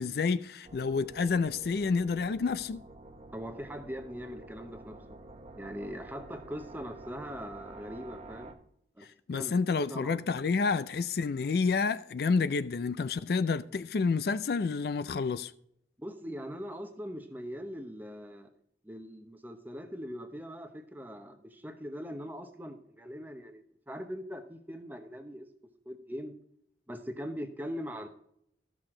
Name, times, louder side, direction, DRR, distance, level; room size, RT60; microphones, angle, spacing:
voice 1, 0.0-2.8 9.3-15.5, left 4 dB, 60° left, 0.4 m, -29 dB
sound 1, 0.6-8.5, right 2 dB, 35° right, 0.9 m, -49 dB
voice 2, 3.3-5.2 5.5-8.5 9.0-9.5 9.9-10.1 16.0-18.5 18.8-25.5 25.9-26.4 26.9-28.1, equal, 10° right, 0.9 m, -41 dB
13.5 x 6.2 x 3.8 m
head